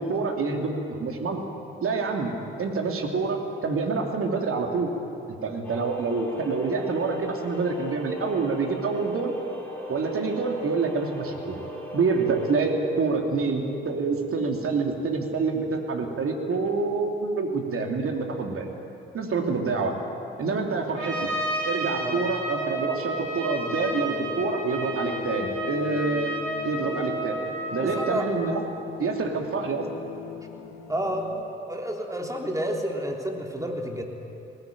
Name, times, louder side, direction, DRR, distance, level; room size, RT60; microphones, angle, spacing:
voice 1, 0.0-1.4 1.8-4.9 5.4-9.3 9.9-11.6 11.9-18.7 19.1-19.9 20.4-21.3 21.6-26.3 26.6-27.4 27.7-28.6 29.0-29.8, right 4 dB, 45° right, 2 dB, 3.0 m, -27 dB
sound 1, 5.6-12.5, right 1 dB, 5° left, 5.5 m, -39 dB
Trumpet, 21.0-28.3, right 1 dB, 85° right, 3.7 m, -31 dB
sound 2, 23.7-31.4, left 8 dB, 65° left, 2.2 m, -39 dB
voice 2, 27.8-28.2 30.9-31.3 31.7-34.0, equal, 10° right, 0 dB, 3.7 m, -30 dB
20.0 x 18.5 x 9.2 m, 2.8 s
figure-of-eight pair, 40°, 30 cm